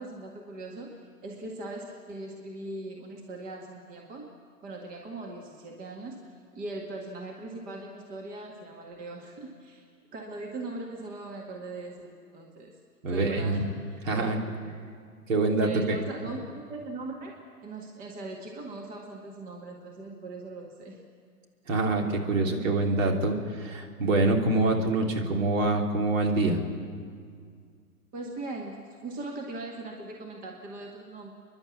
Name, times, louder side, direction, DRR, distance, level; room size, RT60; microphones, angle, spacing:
voice 1, 0.0-4.3 4.6-6.2 6.5-9.8 10.1-12.7 13.1-14.3 14.6-14.7 15.6-17.4 17.6-21.0 28.1-31.3, right 2 dB, 20° right, 0 dB, 1.9 m, -40 dB
voice 2, 13.0-13.6 14.0-14.4 15.3-15.9 21.7-26.6, right 2 dB, 55° right, 1 dB, 3.2 m, -25 dB
29.5 x 11.5 x 8.5 m, 2.1 s
figure-of-eight pair, 130°, 47 cm